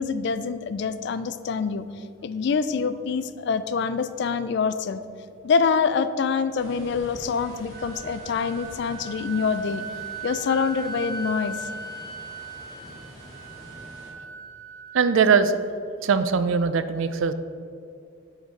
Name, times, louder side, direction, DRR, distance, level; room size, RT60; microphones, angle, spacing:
voice 1, 0.0-1.9 2.2-5.0 5.4-9.8 10.2-11.7, left 5 dB, 55° left, 12 dB, 0.3 m, -25 dB
sound 1, 6.6-14.1, equal, 20° left, 1.7 m, -46 dB
Wind instrument woodwind instrument, 7.4-15.1, right 3 dB, 45° right, 0.8 m, -38 dB
voice 2, 14.9-15.5 16.0-17.3, right 5 dB, 70° right, 11 dB, 0.4 m, -21 dB
9.5 x 4.0 x 4.0 m, 2.5 s
head